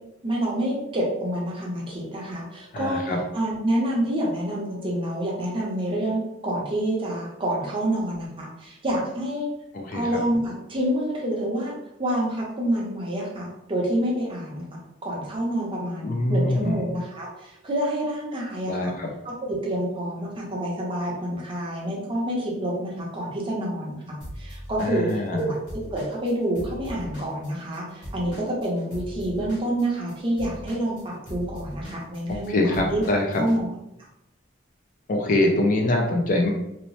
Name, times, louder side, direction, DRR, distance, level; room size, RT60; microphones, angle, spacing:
voice 1, 0.2-3.0 3.3-9.5 9.9-11.7 12.0-18.9 19.2-33.0 33.4-33.7, right 1 dB, 25° right, -4 dB, 0.6 m, -28 dB
voice 2, 2.7-3.2 9.7-10.1 16.0-16.8 18.7-19.1 24.8-25.5 32.3-33.2 35.1-36.5, left 1 dB, 45° left, 2 dB, 0.4 m, -24 dB
Drum kit / Drum, 24.2-27.8 28.0-33.6, equal, 65° left, 1.3 m, -39 dB
2.7 x 2.0 x 3.0 m, 0.86 s
head